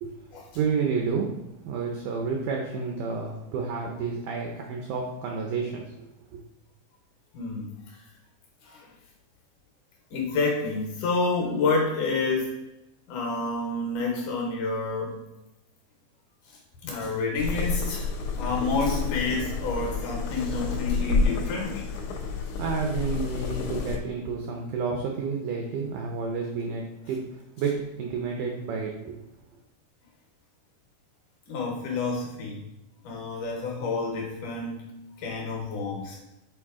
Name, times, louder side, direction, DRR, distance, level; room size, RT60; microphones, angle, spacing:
voice 1, 0.5-1.3 1.6-6.1 6.3-6.4 22.0-27.2 27.6-29.3, right 5 dB, 85° right, 1 dB, 1.8 m, -30 dB
voice 2, 7.3-8.0 8.6-8.9 10.1-12.5 13.1-15.2 16.8-21.9 31.5-32.6 33.0-34.9 35.2-36.2, left 3 dB, 70° left, -1 dB, 2.2 m, -29 dB
sound 1, 17.4-24.0, left 4 dB, 90° left, 1.6 m, -29 dB
7.6 x 3.9 x 3.6 m, 0.93 s
omnidirectional pair, 4.5 m